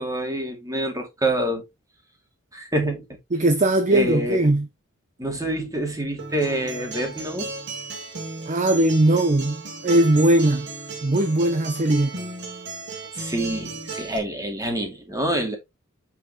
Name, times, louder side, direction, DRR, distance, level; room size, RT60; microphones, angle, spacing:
voice 1, 0.0-1.6 2.5-3.0 3.9-4.5 5.2-7.5 13.1-15.6, right 1 dB, 15° right, 2.4 m, -26 dB
voice 2, 3.3-4.7 8.5-10.7 11.0-12.1, right 1 dB, 35° right, 0.7 m, -19 dB
Acoustic guitar, 6.2-14.2, right 3 dB, 60° right, 2.2 m, -35 dB
7.7 x 5.9 x 2.9 m
head